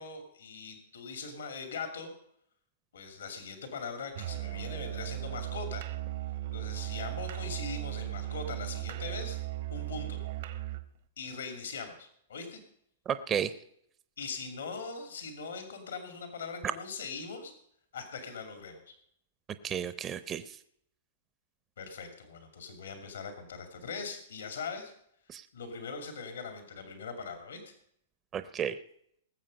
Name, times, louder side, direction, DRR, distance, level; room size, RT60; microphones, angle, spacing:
voice 1, 0.0-2.1 2.9-5.9 6.5-9.4 9.7-10.2 11.2-12.6 14.2-17.5 17.9-18.9 21.8-24.9 25.5-27.7, left 5 dB, 85° left, 6 dB, 2.5 m, -41 dB
Musical instrument, 4.1-10.9, right 15 dB, 65° right, 1.1 m, -37 dB
voice 2, 13.1-13.5 19.6-20.6 25.3-25.5 28.3-28.8, right 8 dB, 25° right, 12 dB, 0.6 m, -33 dB
19.5 x 7.5 x 5.3 m, 0.69 s
hypercardioid pair, 135°, 0 cm